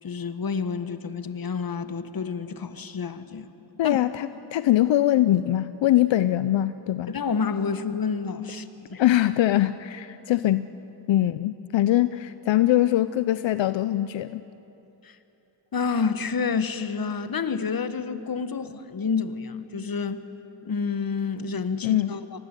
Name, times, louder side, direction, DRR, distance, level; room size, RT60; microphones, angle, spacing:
voice 1, 0.0-3.5 3.8-4.0 7.1-9.0 15.0-15.1 15.7-20.2 20.6-22.4, left 5 dB, 50° left, 11 dB, 1.5 m, -29 dB
voice 2, 3.8-7.1 9.0-10.7 11.1-14.4 21.8-22.1, left 13 dB, 85° left, 13 dB, 0.6 m, -22 dB
23.5 x 19.0 x 9.9 m, 2.9 s
cardioid pair, 60°, 44 cm